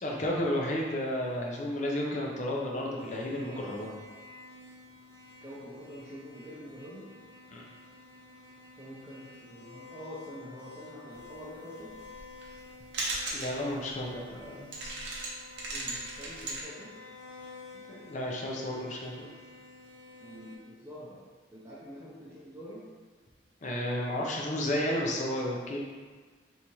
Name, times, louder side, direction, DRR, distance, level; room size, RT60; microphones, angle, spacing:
voice 1, 0.0-3.9 7.5-7.6 13.3-14.8 17.9-19.3 23.6-25.8, left 1 dB, 40° left, -2 dB, 0.5 m, -32 dB
sound 1, 3.0-20.6, left 3 dB, 15° left, 0.9 m, -51 dB
voice 2, 5.4-7.1 8.7-11.9 15.7-16.9 20.2-21.2 21.5-22.9, equal, 15° right, -9 dB, 0.5 m, -46 dB
sound 2, 11.8-12.7 12.9-13.6 13.9-14.0 14.4-14.5 14.7-16.6, right 2 dB, 60° right, 0.7 m, -36 dB
3.4 x 2.7 x 2.9 m, 1.4 s
head